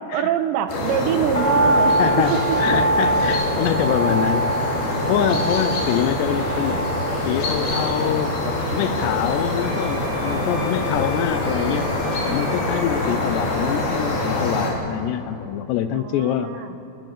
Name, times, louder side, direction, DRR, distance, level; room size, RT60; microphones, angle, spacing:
voice 1, 0.1-1.9 2.3-2.6 15.9-16.8, right 9 dB, 80° right, 8 dB, 3.2 m, -24 dB
sound 1, 0.7-14.7, left 1 dB, 55° left, 5.2 m, -25 dB
sound 2, 1.3-13.6 13.9-14.0, right 1 dB, 40° left, 0.8 m, -26 dB
voice 2, 2.0-4.7 5.1-6.9 7.3-12.0 12.2-16.7, left 10 dB, 80° left, 11 dB, 2.7 m, -25 dB
Wind instrument woodwind instrument, 9.6-13.0, right 1 dB, 45° right, 4.3 m, -38 dB
26.0 x 19.5 x 6.6 m, 2.8 s
omnidirectional pair, 5.2 m